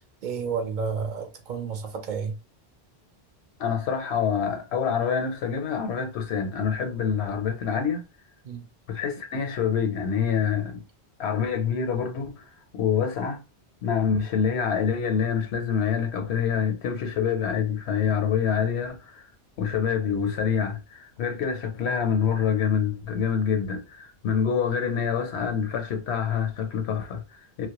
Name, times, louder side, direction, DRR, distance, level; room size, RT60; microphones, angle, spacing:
voice 1, 0.2-2.4 8.4-8.7, right 6 dB, 55° right, 0.6 m, -31 dB
voice 2, 3.6-8.0 8.9-10.8 11.2-12.4 12.7-13.4 13.8-19.3 19.6-27.7, left 7 dB, 80° left, 0.9 m, -26 dB
2.2 x 2.1 x 2.9 m
omnidirectional pair, 1.1 m